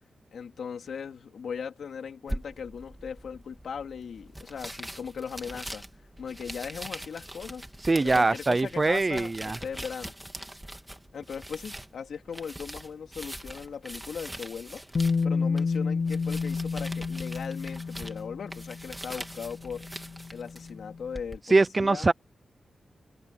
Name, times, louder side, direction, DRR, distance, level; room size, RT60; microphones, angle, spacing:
voice 1, 0.3-5.8 6.2-7.7 8.0-10.1 11.1-14.8 15.2-19.9 20.3-22.1, left 6 dB, 75° left, 3.7 m, -38 dB
sound 1, 2.3-21.4, right 1 dB, 5° right, 2.3 m, -42 dB
voice 2, 7.9-9.6 21.5-22.1, right 3 dB, 25° right, 0.6 m, -23 dB
Bass guitar, 15.0-21.0, left 4 dB, 40° left, 0.7 m, -30 dB
wide cardioid pair, 130°, 0 cm